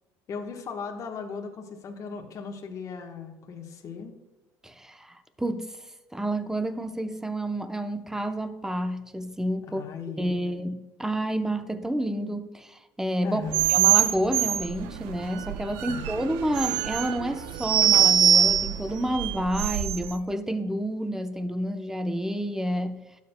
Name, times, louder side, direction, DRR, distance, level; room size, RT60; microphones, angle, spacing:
voice 1, 0.3-4.1 9.7-10.5 13.2-13.7 15.9-16.1, left 5 dB, 45° left, 2 dB, 1.2 m, -37 dB
voice 2, 4.6-5.7 6.1-9.8 10.2-13.4 13.7-23.0, right 1 dB, 5° right, 9 dB, 0.7 m, -29 dB
sound 1, 13.5-20.1, right 9 dB, 80° right, 0.5 m, -23 dB
12.0 x 7.4 x 2.2 m, 1.1 s
supercardioid pair, 100°, 8 cm